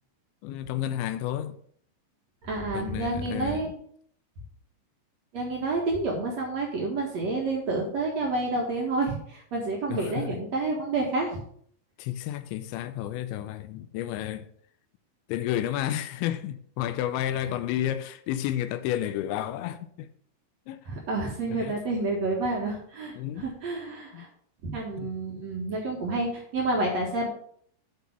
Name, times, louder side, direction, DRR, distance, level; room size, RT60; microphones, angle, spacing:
voice 1, 0.4-1.6 2.7-3.7 9.9-10.4 12.0-14.5 15.3-20.1 20.7-20.8 21.5-21.8 23.2-23.6 24.1-24.3 25.0-25.2, left 12 dB, 90° left, 2.9 m, -31 dB
voice 2, 2.4-3.7 5.3-11.4 20.9-24.3 24.6-27.3, right 2 dB, 60° right, 1.9 m, -29 dB
8.5 x 5.3 x 6.0 m
omnidirectional pair, 5.1 m